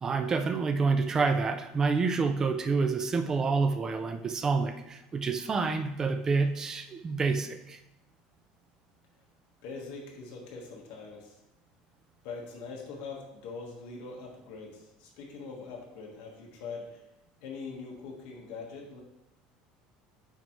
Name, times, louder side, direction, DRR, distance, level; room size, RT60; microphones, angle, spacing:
voice 1, 0.0-7.8, right 4 dB, 20° right, 7 dB, 0.4 m, -28 dB
voice 2, 9.6-11.3 12.2-17.0 17.4-19.0, left 4 dB, 65° left, -2 dB, 1.4 m, -42 dB
8.8 x 3.6 x 3.1 m, 0.89 s
cardioid pair, 165°, 3 cm